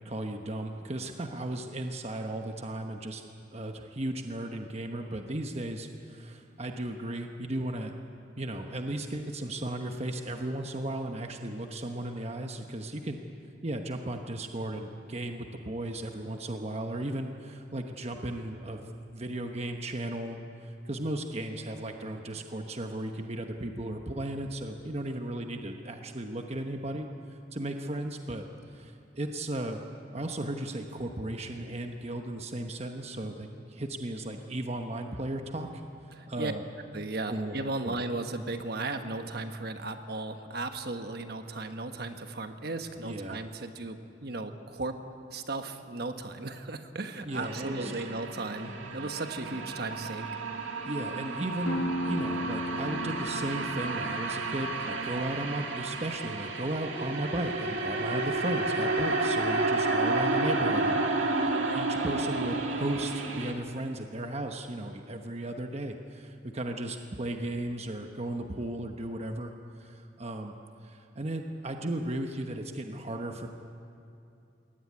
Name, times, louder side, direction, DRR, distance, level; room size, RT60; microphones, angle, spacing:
voice 1, 0.0-3.3 3.5-7.9 8.4-13.2 13.6-18.8 19.1-28.4 28.7-29.8 30.1-35.7 36.3-36.6 37.3-37.6 37.8-38.0 43.0-43.4 47.3-47.9 50.8-61.0 61.3-69.5 69.8-70.5 70.8-73.5, right 1 dB, 35° right, 4 dB, 1.1 m, -35 dB
voice 2, 36.2-36.5 36.9-45.0 45.3-50.3, right 2 dB, 55° right, 7 dB, 1.3 m, -36 dB
sound 1, 47.4-63.5, right 2 dB, 85° right, 2.2 m, -31 dB
sound 2, 51.6-57.1, left 1 dB, 75° left, 1.1 m, -37 dB
22.0 x 17.5 x 9.5 m, 2.6 s
head